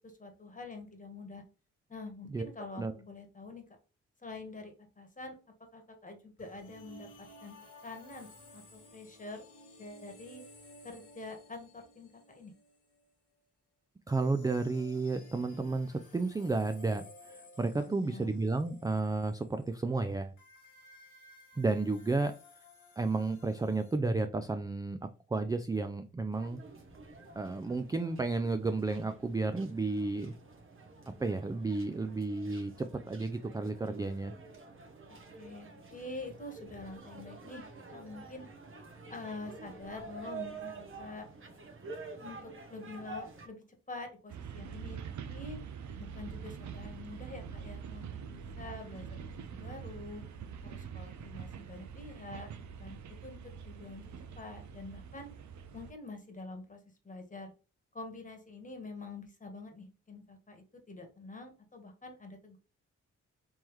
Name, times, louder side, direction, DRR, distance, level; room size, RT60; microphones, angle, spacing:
voice 1, 0.0-1.4 1.9-3.6 4.2-5.3 5.7-7.1 7.4-7.6 7.8-9.5 9.8-10.4 10.8-12.5 17.8-18.4 35.4-37.6 37.9-38.5 39.1-41.3 42.2-45.0 45.3-45.6 46.0-49.2 49.5-50.2 50.6-52.5 52.8-55.3 55.7-57.5 57.9-62.6, left 2 dB, 25° left, 5 dB, 1.3 m, -46 dB
sound 1, 6.4-13.1 14.1-19.8 20.4-24.0, left 2 dB, 70° left, 1.4 m, -56 dB
voice 2, 14.1-20.3 21.6-22.3 23.0-25.0 25.3-26.6 27.4-30.3 31.1-34.3, right 3 dB, 10° right, 8 dB, 0.3 m, -32 dB
sound 2, 26.3-43.5, right 3 dB, 40° right, 1.0 m, -49 dB
sound 3, 44.3-55.9, right 7 dB, 65° right, 0.6 m, -45 dB
3.5 x 3.0 x 3.1 m, 0.34 s
supercardioid pair, 50°, 31 cm